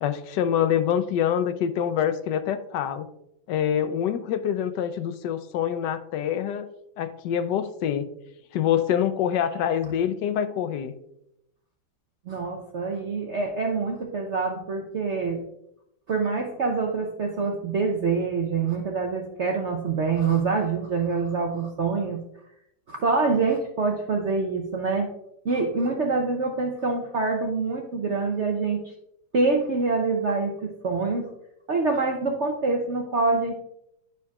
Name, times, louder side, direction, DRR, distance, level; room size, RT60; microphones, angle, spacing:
voice 1, 0.0-3.1 3.5-6.7 7.0-8.1 8.5-10.9, left 9 dB, 75° left, 9 dB, 1.2 m, -25 dB
voice 2, 12.3-15.4 16.1-22.2 22.9-25.1 25.4-28.9 29.3-31.2 31.7-33.5, right 4 dB, 60° right, 2 dB, 0.7 m, -25 dB
11.5 x 4.8 x 2.3 m, 0.79 s
omnidirectional pair, 2.0 m